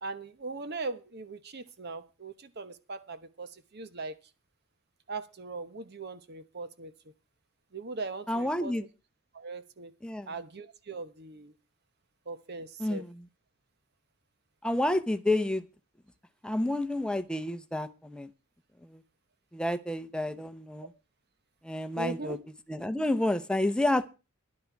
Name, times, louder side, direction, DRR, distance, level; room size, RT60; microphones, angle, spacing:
voice 1, 0.0-4.2 5.1-6.9 7.7-8.7 9.3-9.9 10.3-11.5 12.3-13.0 21.9-22.4, right 3 dB, 50° right, 12 dB, 1.0 m, -40 dB
voice 2, 8.3-8.8 10.0-10.3 12.8-13.2 14.6-15.6 16.4-18.3 18.8-19.0 19.5-20.9 21.6-22.4 22.7-24.1, left 1 dB, 5° left, 9 dB, 0.8 m, -29 dB
13.5 x 11.0 x 4.6 m, 0.31 s
head